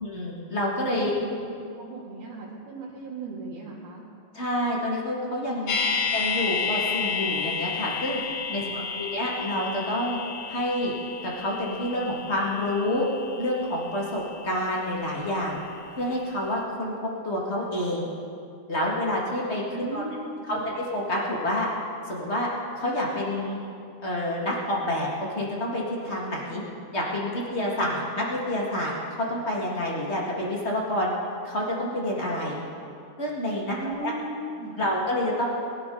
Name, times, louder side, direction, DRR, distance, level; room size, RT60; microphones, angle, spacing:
voice 1, 0.0-1.1 4.3-5.7 6.1-8.2 8.5-10.2 10.5-10.9 11.2-13.1 13.4-15.6 16.0-16.9 17.2-18.1 18.7-20.0 20.5-21.7 22.0-22.5 22.7-23.6 24.0-26.6 26.9-31.1 31.4-32.6 33.2-34.1 34.8-35.4, left 1 dB, 45° left, -3 dB, 0.8 m, -28 dB
voice 2, 0.9-4.0 5.7-6.1 8.5-9.0 19.7-20.7 33.7-34.8, right 2 dB, 70° right, -8 dB, 3.9 m, -38 dB
sound 1, 5.7-15.7 16.0-16.1, left 5 dB, 70° left, 2.6 m, -32 dB
22.5 x 12.0 x 3.9 m, 2.5 s
omnidirectional pair, 4.6 m